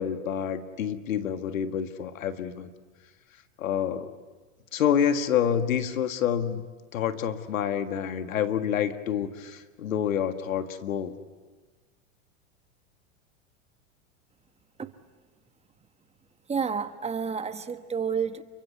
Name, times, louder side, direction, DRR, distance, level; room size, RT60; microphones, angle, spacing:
voice 1, 0.0-2.7 3.6-4.1 4.7-6.6 6.9-11.2, left 9 dB, 85° left, 9 dB, 1.8 m, -28 dB
voice 2, 16.5-18.4, right 6 dB, 15° right, 10 dB, 1.2 m, -30 dB
29.0 x 24.0 x 8.4 m, 1.3 s
hypercardioid pair, 115°, 39 cm